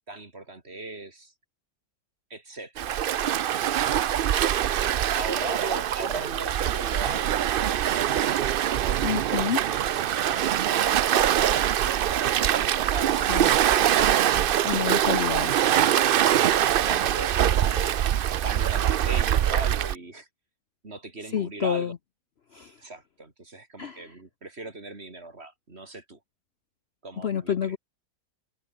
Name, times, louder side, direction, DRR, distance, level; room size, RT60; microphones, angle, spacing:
voice 1, 0.1-1.3 2.3-2.9 3.6-4.1 5.2-8.4 8.8-9.9 10.3-10.5 10.8-14.2 14.7-15.5 16.0-18.1 18.4-20.3 20.8-21.9 22.8-26.2 27.0-27.8, right 2 dB, 40° right, 3.7 m, -39 dB
Waves surf, 2.8-19.9, right 10 dB, 80° right, 0.4 m, -23 dB
voice 2, 9.0-9.6 13.3-13.5 14.6-15.5 21.3-22.0 22.5-22.8 23.8-24.1 27.2-27.8, left 8 dB, 50° left, 0.9 m, -28 dB
open air
omnidirectional pair, 1.6 m